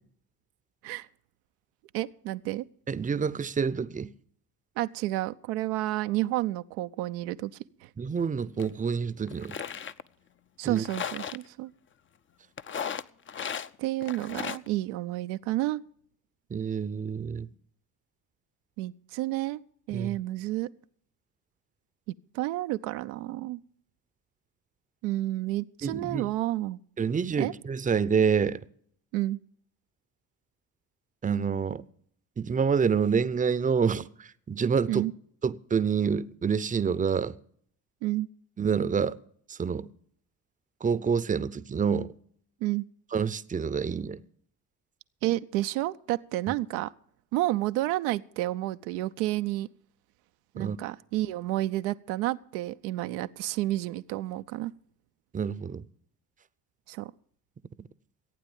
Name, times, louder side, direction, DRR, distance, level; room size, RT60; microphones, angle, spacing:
voice 1, 1.9-2.6 4.8-7.5 7.8-7.9 10.6-11.7 13.8-15.8 18.8-19.6 19.9-20.7 22.3-23.6 25.0-26.8 27.4-27.5 29.1-29.4 34.9-35.1 38.0-38.3 42.6-42.8 45.2-46.9 47.3-49.7 50.5-54.7 56.9-57.1, right 16 dB, 75° right, 0.6 m, -30 dB
voice 2, 2.9-4.1 8.0-9.6 10.6-10.8 16.5-17.5 19.9-20.2 25.8-26.3 27.0-28.6 31.2-31.8 32.4-34.1 34.5-35.1 35.4-37.3 38.6-39.2 39.5-39.9 40.8-42.1 43.1-44.2 46.5-46.6 50.6-50.8 55.3-55.8 57.8-57.9, right 6 dB, 20° right, 0.6 m, -27 dB
sound 1, 8.6-8.7 9.3-10.0 10.7-11.4 12.6-13.7 14.0-14.7, left 7 dB, 30° left, 0.6 m, -35 dB
15.5 x 8.9 x 7.1 m
hypercardioid pair, 55°, 44 cm